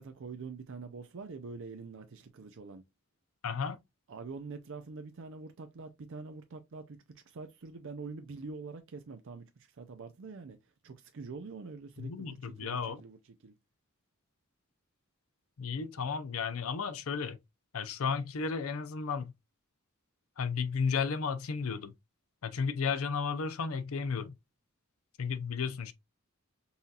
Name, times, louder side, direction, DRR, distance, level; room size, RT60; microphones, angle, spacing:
voice 1, 0.0-2.8 4.1-7.0 7.3-10.6 10.8-13.5, right 4 dB, 65° right, 0.5 m, -45 dB
voice 2, 3.4-3.8 12.0-13.0 15.6-17.4 17.7-19.3 20.4-21.9 22.4-24.3 25.2-25.9, left 5 dB, 80° left, 0.6 m, -33 dB
5.5 x 2.8 x 2.4 m
head